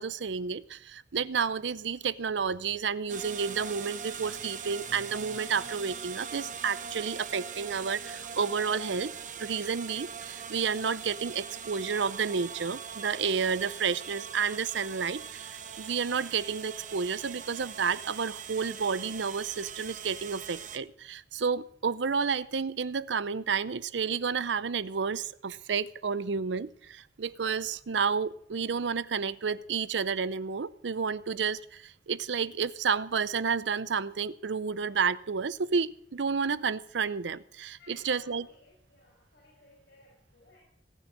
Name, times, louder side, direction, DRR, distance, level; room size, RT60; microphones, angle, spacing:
voice 1, 0.0-9.1 9.4-38.5, right 5 dB, 85° right, 0.6 m, -31 dB
sound 1, 3.1-20.8, right 7 dB, 45° right, 0.9 m, -41 dB
voice 2, 37.8-40.6, left 2 dB, 65° left, 6.1 m, -58 dB
18.5 x 6.3 x 8.5 m
head